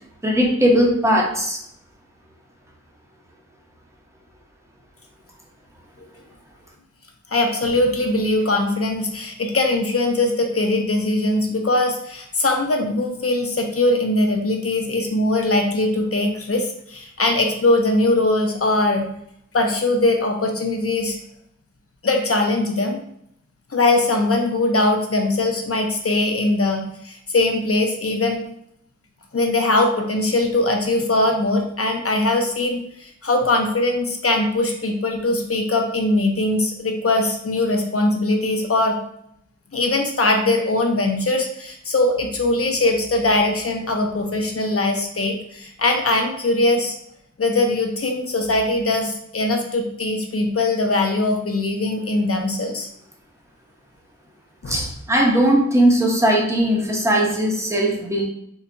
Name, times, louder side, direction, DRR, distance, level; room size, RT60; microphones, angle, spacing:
voice 1, 0.2-1.6 54.7-58.2, right 1 dB, 10° right, -1 dB, 0.7 m, -18 dB
voice 2, 7.3-19.1 19.5-21.2 22.0-23.0 23.7-28.4 29.3-39.0 39.7-46.9 47.4-52.9 54.6-54.8, left 2 dB, 50° left, 3 dB, 0.6 m, -21 dB
3.8 x 2.7 x 2.2 m, 0.73 s
wide cardioid pair, 55°, 30 cm